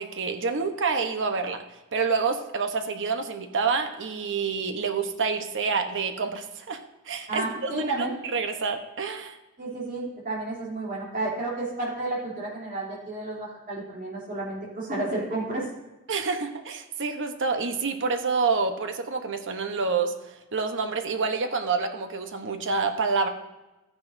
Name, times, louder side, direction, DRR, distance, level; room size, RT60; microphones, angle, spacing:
voice 1, 0.0-1.6 1.9-6.8 7.1-9.4 16.1-23.3, right 4 dB, 55° right, 6 dB, 0.9 m, -28 dB
voice 2, 7.3-8.2 9.6-15.7, right 2 dB, 40° right, -4 dB, 3.0 m, -31 dB
14.0 x 9.7 x 2.6 m, 1.1 s
head